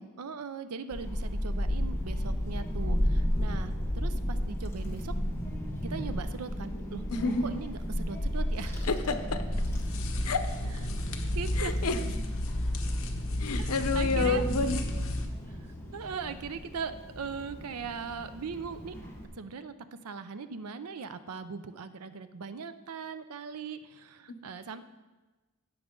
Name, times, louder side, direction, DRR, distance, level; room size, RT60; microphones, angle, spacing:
voice 1, 0.2-5.1 5.8-7.1 7.4-8.9 11.3-11.8 13.6-14.4 15.5-15.6 15.9-18.9 19.4-19.7 20.0-24.8, right 5 dB, 80° right, 12 dB, 0.6 m, -39 dB
Child speech kid speaking / Wind, 0.9-19.3, equal, 10° left, 1.5 m, -34 dB
voice 2, 7.1-7.4 8.9-9.4 10.2-10.5 11.6-12.0 13.4-14.8, left 3 dB, 85° left, 9 dB, 0.8 m, -29 dB
sound 1, 9.5-15.3, left 1 dB, 65° left, 1.1 m, -32 dB
16.5 x 6.2 x 3.8 m, 1.2 s
head